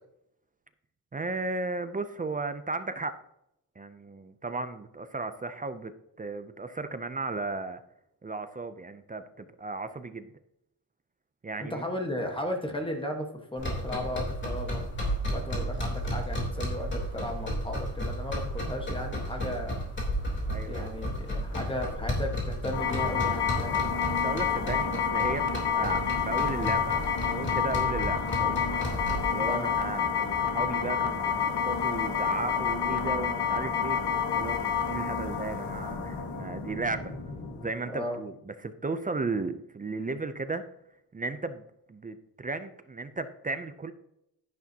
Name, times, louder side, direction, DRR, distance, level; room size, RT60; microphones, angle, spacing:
voice 1, 1.1-3.2 3.8-5.9 6.2-7.8 8.2-10.3 11.4-11.8 20.5-20.9 24.2-28.7 29.3-34.0 34.3-37.1 37.6-40.6 41.1-43.9, right 3 dB, 20° right, 10 dB, 0.4 m, -35 dB
voice 2, 11.6-13.3 13.5-14.8 15.3-19.8 20.6-23.8 29.4-29.7 37.8-38.2, equal, 15° left, 2 dB, 1.3 m, -35 dB
sound 1, 13.6-29.3, equal, 30° left, 3.3 m, -33 dB
sound 2, 22.7-37.7, left 7 dB, 80° left, 1.7 m, -29 dB
11.5 x 10.5 x 2.8 m, 0.80 s
wide cardioid pair, 175°, 40 cm